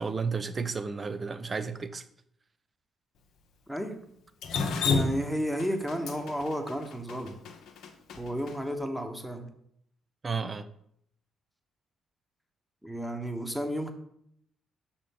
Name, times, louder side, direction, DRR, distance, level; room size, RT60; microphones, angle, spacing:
voice 1, 0.0-2.0 10.2-10.7, right 5 dB, 35° right, 0.6 m, -32 dB
Drip, 4.4-8.5, left 4 dB, 70° left, 0.8 m, -30 dB
voice 2, 4.8-7.3 8.2-9.5 12.8-13.9, equal, ahead, 1.2 m, -32 dB
6.2 x 4.4 x 5.4 m
hypercardioid pair, 50°, 0 cm